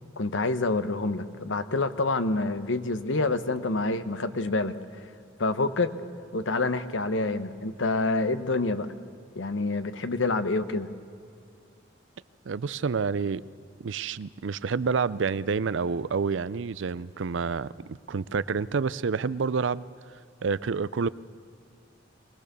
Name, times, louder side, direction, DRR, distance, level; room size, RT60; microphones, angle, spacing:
voice 1, 0.2-4.7 5.4-5.9 6.3-8.9 9.3-10.9, left 3 dB, 85° left, 11 dB, 1.0 m, -27 dB
voice 2, 12.5-13.4 13.8-19.8 20.4-21.1, right 5 dB, 80° right, 18 dB, 0.5 m, -28 dB
23.5 x 19.5 x 6.8 m, 2.5 s
head